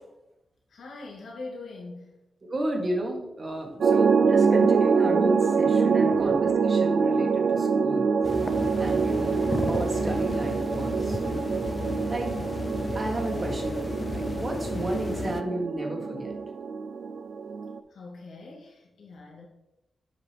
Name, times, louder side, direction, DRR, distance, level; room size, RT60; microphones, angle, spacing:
voice 1, 0.7-2.2 6.0-6.4 17.9-19.5, left 3 dB, 85° left, -2 dB, 1.9 m, -42 dB
voice 2, 2.4-8.1 8.8-11.4 12.1-12.3 12.9-16.3, right 1 dB, 35° right, 2 dB, 1.5 m, -32 dB
sound 1, 3.8-17.8, right 5 dB, 65° right, 0.4 m, -25 dB
sound 2, 8.2-15.4, left 3 dB, 30° left, 0.4 m, -33 dB
7.3 x 5.7 x 3.4 m, 0.89 s
wide cardioid pair, 130°, 0 cm